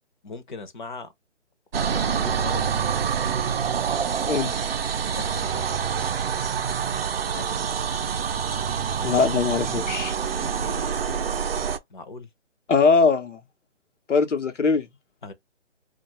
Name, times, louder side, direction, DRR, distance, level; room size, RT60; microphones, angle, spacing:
voice 1, 0.2-1.1 1.9-2.9 5.1-5.6 7.3-7.6 10.4-11.3 11.9-12.3 15.2-15.3, left 3 dB, 45° left, 0.6 m, -40 dB
sound 1, 1.7-11.8, right 7 dB, 55° right, 0.5 m, -26 dB
voice 2, 4.3-4.6 9.0-10.1 12.7-13.4 14.1-14.9, left 4 dB, 90° left, 0.9 m, -21 dB
2.3 x 2.3 x 2.9 m
hypercardioid pair, 160°, 36 cm